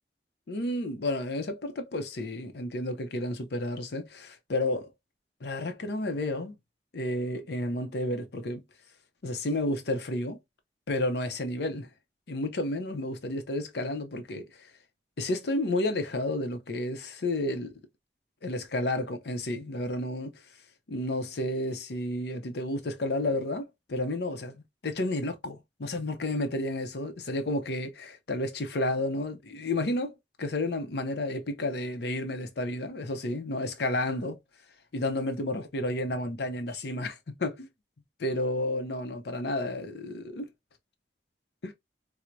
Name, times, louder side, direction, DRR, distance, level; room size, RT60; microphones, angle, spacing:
voice 1, 0.5-4.9 5.4-6.6 6.9-8.6 9.2-10.4 10.9-11.9 12.3-14.7 15.2-17.7 18.4-20.4 20.9-34.4 34.9-37.7 38.2-40.4 41.6-41.7, left 1 dB, 65° left, 0.6 m, -31 dB
4.4 x 2.1 x 2.5 m
head